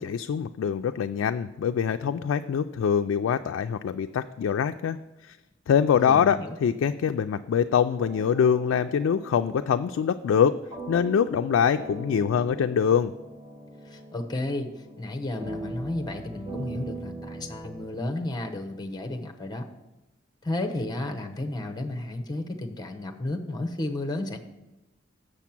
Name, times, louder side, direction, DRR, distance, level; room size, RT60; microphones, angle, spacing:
voice 1, 0.0-5.0 5.3-5.4 5.7-10.6 10.9-13.1, left 7 dB, 85° left, 7 dB, 0.3 m, -24 dB
voice 2, 6.1-6.8 13.9-14.7 15.0-19.7 20.4-24.4, left 2 dB, 20° left, 4 dB, 0.9 m, -32 dB
sound 1, 7.9-17.9, right 1 dB, 25° right, 0.9 m, -41 dB
7.1 x 6.8 x 5.9 m, 1.0 s
head